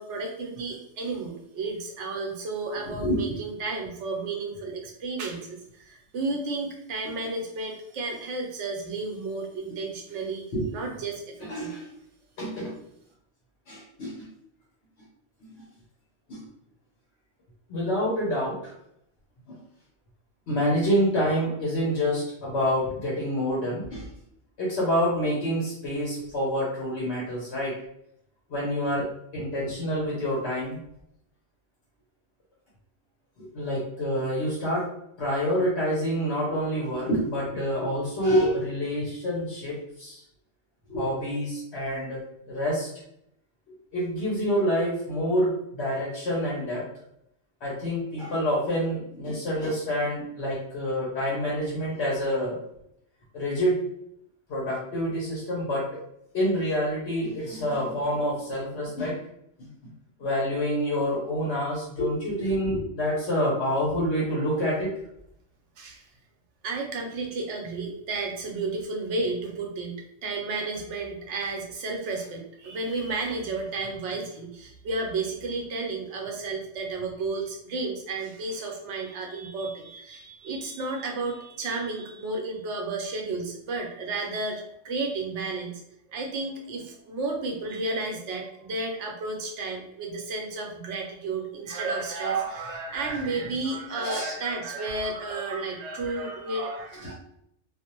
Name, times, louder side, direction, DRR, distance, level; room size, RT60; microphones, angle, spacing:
voice 1, 0.0-10.4 10.7-11.7 65.8-66.0 66.6-85.8 86.1-97.1, right 3 dB, 85° right, 1 dB, 0.9 m, -32 dB
voice 2, 3.0-3.4 7.1-7.2 9.7-9.8 10.5-10.7 11.4-11.9 12.4-12.7 13.7-14.3 16.3-16.4 17.7-18.7 19.5-19.6 20.5-24.1 24.6-27.7 28.5-29.1 29.3-30.8 33.4-34.9 35.2-40.2 40.9-42.2 42.5-42.9 43.9-46.8 47.6-52.6 53.3-53.8 54.5-56.0 56.3-59.2 59.6-59.9 60.2-64.9 94.0-94.3 97.0-97.1, equal, 70° left, -5 dB, 1.1 m, -27 dB
2.5 x 2.0 x 2.9 m, 0.74 s
omnidirectional pair, 1.2 m